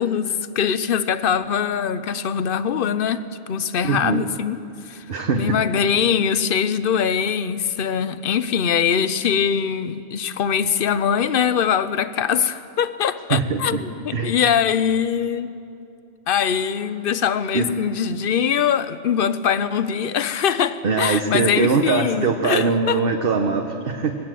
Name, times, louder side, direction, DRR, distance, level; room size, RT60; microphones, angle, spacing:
voice 1, 0.0-4.6 4.9-5.1 5.3-13.8 14.0-15.5 16.3-23.0, left 8 dB, 55° left, 13 dB, 0.8 m, -22 dB
voice 2, 3.8-4.3 5.1-5.6 13.3-13.8 14.1-14.3 17.5-17.8 20.8-24.2, right 4 dB, 50° right, 4 dB, 1.1 m, -22 dB
21.0 x 17.0 x 7.6 m, 2.6 s
omnidirectional pair, 1.3 m